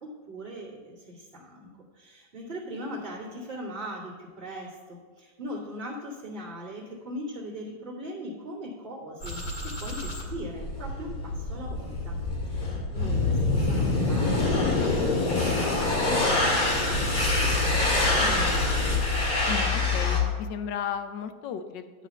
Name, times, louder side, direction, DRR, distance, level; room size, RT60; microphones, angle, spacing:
voice 1, 0.0-12.2 12.5-18.7, equal, 30° right, -11 dB, 2.4 m, -40 dB
sound 1, 9.2-20.2, left 2 dB, 55° left, 2.3 m, -25 dB
voice 2, 19.5-21.9, left 8 dB, 75° left, 9 dB, 1.4 m, -34 dB
11.5 x 4.1 x 7.3 m, 1.5 s
omnidirectional pair, 2.0 m